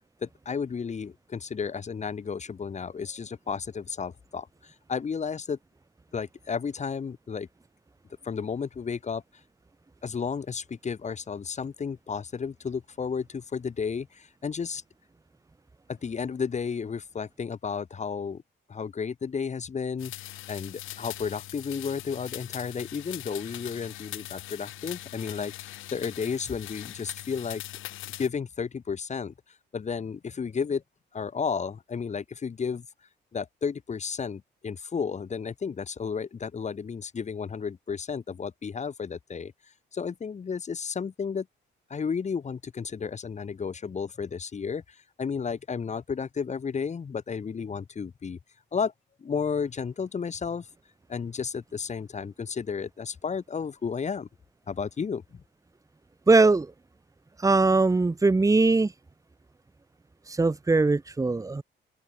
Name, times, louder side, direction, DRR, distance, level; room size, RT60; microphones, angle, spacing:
voice 1, 0.2-5.6 6.1-7.5 8.2-9.2 10.0-14.8 15.9-18.4 18.7-20.1 20.5-27.6 28.2-29.3 29.7-30.8 31.1-32.9 33.3-39.5 39.9-41.5 41.9-48.4 48.7-48.9 49.2-50.7 51.1-54.3 54.7-55.4, left 6 dB, 35° left, 1.3 m, -32 dB
sound 1, 20.0-28.3, left 15 dB, 90° left, 6.5 m, -41 dB
voice 2, 56.3-56.7 57.4-58.9 60.4-61.6, right 3 dB, 15° right, 1.2 m, -21 dB
open air
cardioid pair, 90°, 20 cm